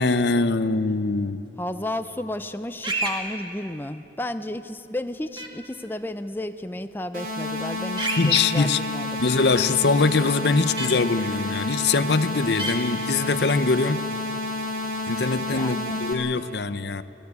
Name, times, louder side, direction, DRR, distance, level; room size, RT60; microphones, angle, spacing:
voice 1, 0.0-1.4 8.2-8.8 9.2-14.0 15.1-17.0, left 4 dB, 70° left, 13 dB, 0.7 m, -22 dB
voice 2, 1.6-9.2 15.5-16.0, left 1 dB, 10° left, 9 dB, 0.6 m, -32 dB
sound 1, 2.8-3.2 5.4-5.5 8.0-8.4 10.8-10.9 12.6-12.7, right 2 dB, 25° right, 2.0 m, -27 dB
sound 2, 7.1-16.1, left 2 dB, 50° right, 3.3 m, -30 dB
24.0 x 17.0 x 8.3 m, 2.9 s
head